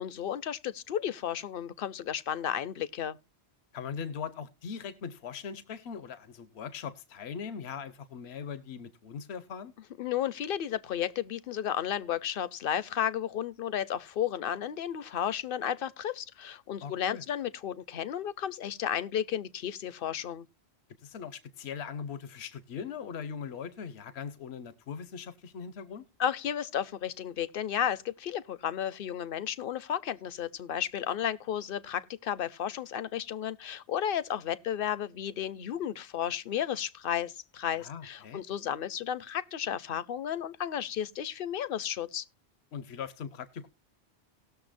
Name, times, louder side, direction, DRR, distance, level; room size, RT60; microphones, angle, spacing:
voice 1, 0.0-3.2 10.0-20.5 26.2-42.2, left 9 dB, 60° left, 0.8 m, -33 dB
voice 2, 3.7-9.7 16.8-17.2 21.0-26.0 37.7-38.4 42.7-43.7, left 6 dB, 75° left, 1.0 m, -40 dB
18.5 x 6.7 x 2.5 m
omnidirectional pair, 1.1 m